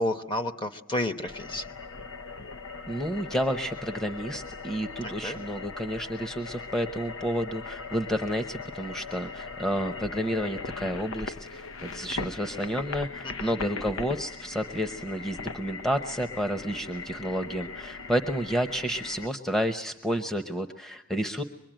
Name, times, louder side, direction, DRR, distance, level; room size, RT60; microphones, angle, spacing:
voice 1, 0.0-1.6 5.0-5.4 13.2-13.6, left 1 dB, 25° left, 7 dB, 1.1 m, -31 dB
sound 1, 1.3-19.3, left 4 dB, 85° left, 0.9 m, -39 dB
voice 2, 2.9-21.4, equal, ahead, 6 dB, 0.9 m, -30 dB
24.5 x 21.5 x 9.0 m, 0.89 s
head